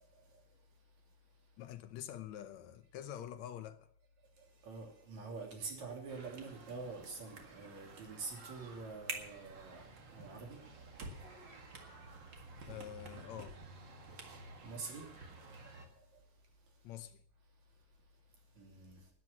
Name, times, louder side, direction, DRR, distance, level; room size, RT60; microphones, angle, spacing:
voice 1, 1.6-3.9 12.7-13.6 16.8-17.2, left 11 dB, 75° left, 2.1 m, -46 dB
voice 2, 4.4-10.6 14.2-15.1 18.6-19.0, right 4 dB, 70° right, 4.4 m, -46 dB
sound 1, 6.1-15.9, right 3 dB, 45° right, 2.3 m, -50 dB
12.5 x 10.0 x 7.3 m
omnidirectional pair, 3.3 m